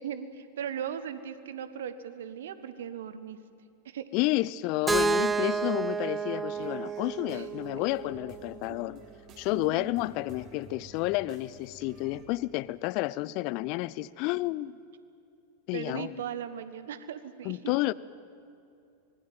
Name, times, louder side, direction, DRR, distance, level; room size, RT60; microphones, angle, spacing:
voice 1, 0.0-3.4 3.8-4.1 5.1-5.2 7.3-7.5 8.7-8.8 9.5-9.9 15.7-17.7, right 9 dB, 60° right, 13 dB, 1.4 m, -38 dB
voice 2, 4.1-9.0 9.4-14.8 15.7-16.1 17.4-17.9, left 18 dB, 45° left, 20 dB, 0.6 m, -30 dB
Keyboard (musical), 4.9-8.8, right 4 dB, 10° right, 0.6 m, -31 dB
sound 1, 6.5-12.3, right 3 dB, 35° right, 3.8 m, -53 dB
25.0 x 21.0 x 9.2 m, 2.6 s
figure-of-eight pair, 90°, 0 cm